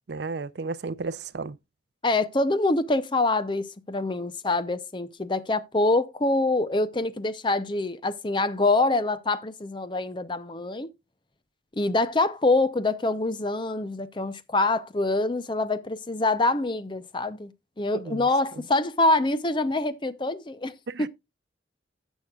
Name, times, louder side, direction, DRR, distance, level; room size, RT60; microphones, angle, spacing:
voice 1, 0.1-1.6 17.9-18.3 20.9-21.1, right 3 dB, 60° right, 0.5 m, -33 dB
voice 2, 2.0-10.9 11.8-17.5 17.8-21.1, left 2 dB, 25° left, 0.5 m, -25 dB
16.0 x 6.3 x 2.3 m
head